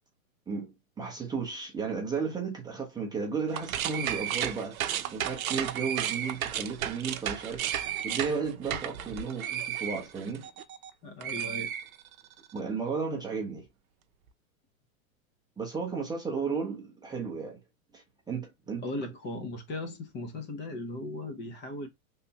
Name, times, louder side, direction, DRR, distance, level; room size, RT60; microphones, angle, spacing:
voice 1, 0.5-10.4 12.5-13.7 15.6-17.6 17.9-18.8, right 5 dB, 10° right, 0.7 m, -34 dB
sound 1, 3.5-10.9 11.2-12.4, right 10 dB, 80° right, 0.7 m, -33 dB
voice 2, 11.0-11.7 18.8-21.9, left 2 dB, 25° left, 0.9 m, -37 dB
3.3 x 2.7 x 2.8 m
hypercardioid pair, 120°, 42 cm